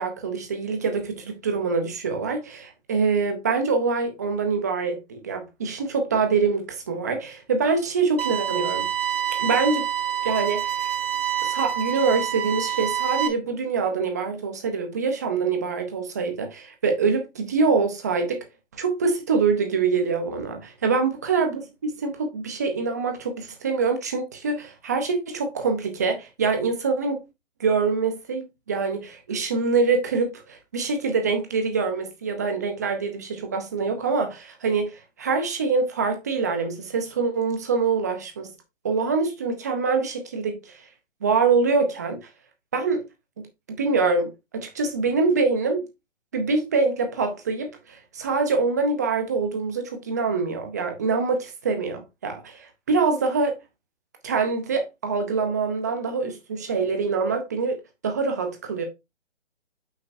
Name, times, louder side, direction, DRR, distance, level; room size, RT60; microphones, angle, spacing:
voice 1, 0.0-8.9 9.4-9.8 10.2-11.0 11.4-18.4 18.7-27.2 27.6-38.5 38.8-40.8 41.2-42.2 42.7-43.0 43.4-45.8 46.3-53.6 54.2-57.8 58.0-58.8, right 4 dB, 15° right, 0.6 m, -25 dB
sound 1, 8.2-13.3, right 11 dB, 50° right, 1.2 m, -27 dB
8.0 x 5.7 x 2.6 m
hypercardioid pair, 160°, 36 cm